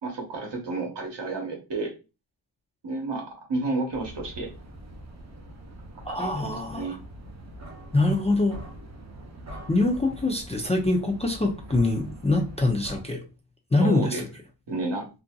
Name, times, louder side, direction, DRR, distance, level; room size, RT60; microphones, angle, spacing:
voice 1, 0.0-1.9 2.8-4.5 6.1-6.9 13.8-14.2 14.7-15.1, right 3 dB, 70° right, 1.0 m, -31 dB
sound 1, 3.9-13.0, right 1 dB, 40° right, 0.6 m, -43 dB
voice 2, 6.1-7.0 7.9-8.6 9.7-13.2 13.7-14.2, left 2 dB, 15° left, 0.4 m, -24 dB
2.6 x 2.6 x 2.2 m
wide cardioid pair, 110°, 45 cm